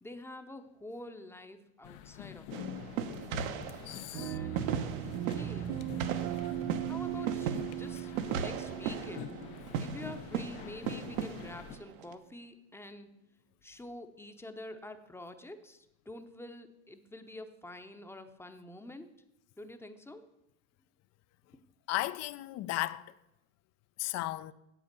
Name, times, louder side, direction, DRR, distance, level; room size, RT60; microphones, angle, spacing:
voice 1, 0.0-2.6 4.1-4.7 5.3-5.8 6.9-9.4 9.8-13.1 13.6-19.1 19.6-20.2, left 1 dB, 5° left, 0.8 m, -47 dB
sound 1, 1.8-11.8, left 11 dB, 60° left, 0.9 m, -47 dB
sound 2, 2.5-12.1, right 8 dB, 70° right, 1.1 m, -38 dB
voice 2, 3.9-4.4 21.9-23.1 24.0-24.5, left 16 dB, 40° left, 0.5 m, -35 dB
sound 3, 4.1-10.7, right 14 dB, 45° right, 0.6 m, -38 dB
8.3 x 8.3 x 6.7 m
supercardioid pair, 110°, 41 cm